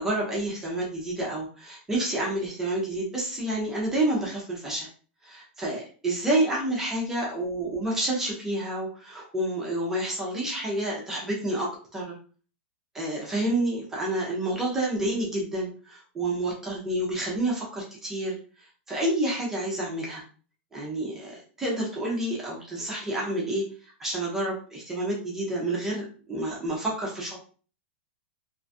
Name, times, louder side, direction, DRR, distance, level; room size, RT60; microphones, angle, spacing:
voice 1, 0.0-4.9 5.2-12.1 12.9-20.2 20.7-27.4, right 1 dB, 5° right, -3 dB, 0.4 m, -29 dB
2.4 x 2.2 x 2.5 m, 0.40 s
supercardioid pair, 175°, 6 cm